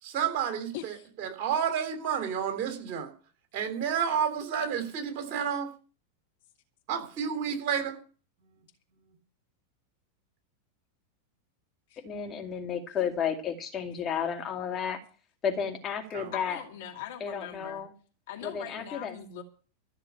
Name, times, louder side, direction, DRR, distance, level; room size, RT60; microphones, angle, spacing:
voice 1, 0.0-3.1 3.5-5.7 6.9-8.0 16.1-16.3, right 8 dB, 45° right, 6 dB, 3.4 m, -30 dB
voice 2, 12.0-15.0 15.4-16.6 17.2-17.9 18.4-19.2, left 7 dB, 25° left, 4 dB, 2.4 m, -32 dB
voice 3, 16.3-17.8 18.3-19.4, left 10 dB, 50° left, 4 dB, 2.4 m, -41 dB
14.0 x 6.8 x 8.9 m, 0.39 s
figure-of-eight pair, 90°, 0 cm